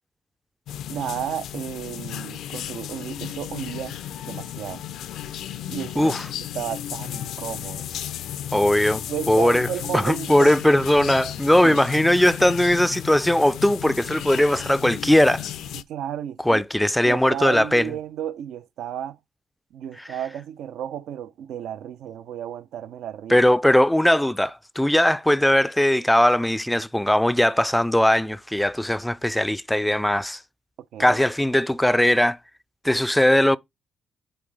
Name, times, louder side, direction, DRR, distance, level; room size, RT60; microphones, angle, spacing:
sound 1, 0.7-15.8, left 11 dB, 80° left, 0.4 m, -34 dB
voice 1, 0.9-4.0 4.2-4.8 5.7-6.1 6.5-7.9 9.1-10.5 11.6-11.8 15.7-16.6 17.0-19.2 19.7-23.4 30.9-31.2, right 10 dB, 80° right, 0.5 m, -33 dB
voice 2, 6.0-6.3 8.5-9.7 9.9-15.4 16.4-17.9 20.0-20.1 23.3-30.4 31.0-32.4 32.8-33.6, left 1 dB, 5° left, 0.3 m, -19 dB
8.7 x 3.9 x 3.2 m
cardioid pair, 90°, 0 cm